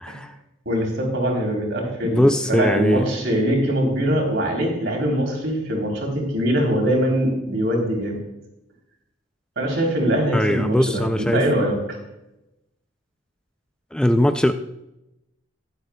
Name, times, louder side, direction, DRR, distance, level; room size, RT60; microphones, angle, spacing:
voice 1, 0.0-0.3 2.0-3.1 10.3-11.5 13.9-14.5, left 1 dB, 5° left, 8 dB, 0.3 m, -20 dB
voice 2, 0.7-2.2 2.5-8.2 9.6-11.8, equal, 65° right, 1 dB, 3.4 m, -22 dB
23.0 x 8.0 x 2.3 m, 0.91 s
head